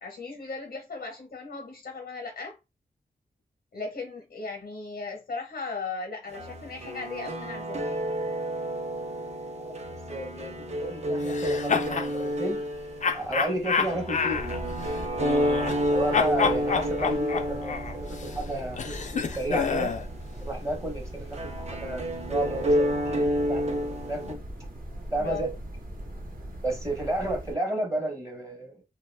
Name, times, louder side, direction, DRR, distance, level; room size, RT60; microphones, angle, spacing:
voice 1, 0.0-2.5 3.7-8.0 25.2-25.4, left 4 dB, 80° left, 0.8 m, -37 dB
sound 1, 6.3-24.3, equal, 45° right, 0.5 m, -30 dB
voice 2, 9.5-10.5 10.8-12.6 13.1-14.7 15.9-19.9 20.4-24.4 25.1-25.5 26.6-28.8, right 1 dB, 20° right, 0.9 m, -32 dB
sound 2, 11.2-12.1 13.0-15.9 16.1-20.1, left 6 dB, 50° left, 0.4 m, -29 dB
sound 3, 14.3-27.6, right 1 dB, 60° right, 0.9 m, -40 dB
2.6 x 2.2 x 3.2 m
wide cardioid pair, 115°, 16 cm